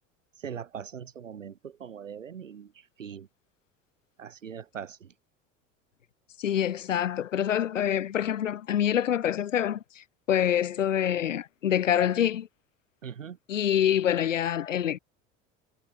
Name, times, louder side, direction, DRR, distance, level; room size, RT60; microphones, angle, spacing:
voice 1, 0.4-2.7 3.0-3.3 4.2-5.1 13.0-13.4, right 8 dB, 90° right, 7.7 m, -41 dB
voice 2, 6.4-12.5 13.5-15.0, left 10 dB, 85° left, 3.1 m, -26 dB
hypercardioid pair, 75°, 37 cm